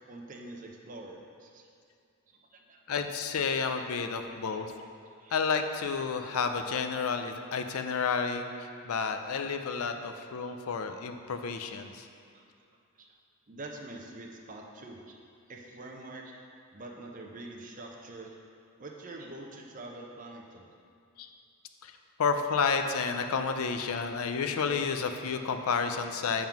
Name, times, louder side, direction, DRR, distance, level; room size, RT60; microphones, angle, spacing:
voice 1, 0.1-1.7 2.3-2.8 5.2-5.3 10.7-10.8 12.3-12.4 13.5-15.2 15.5-16.4 16.7-18.4 18.8-20.7, right 2 dB, 35° right, 1 dB, 0.6 m, -45 dB
voice 2, 2.9-4.7 5.3-8.5 8.9-12.1 21.2-21.3 21.8-21.9 22.2-26.5, left 5 dB, 85° left, 7 dB, 0.5 m, -30 dB
7.2 x 3.7 x 5.9 m, 2.4 s
head